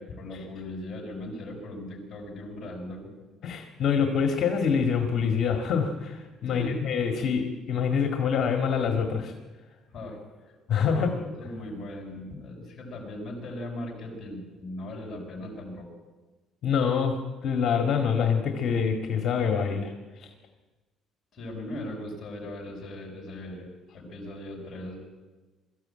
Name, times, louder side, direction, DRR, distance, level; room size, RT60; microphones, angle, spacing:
voice 1, 0.0-3.1 6.5-6.8 9.9-15.9 21.3-23.7 23.9-25.0, left 1 dB, 25° left, 0 dB, 6.6 m, -39 dB
voice 2, 3.4-9.3 10.7-11.1 16.6-17.2 17.4-19.9 20.2-20.3, left 6 dB, 45° left, 5 dB, 2.0 m, -25 dB
22.0 x 14.0 x 8.9 m, 1.2 s
cardioid pair, 160°, 0 cm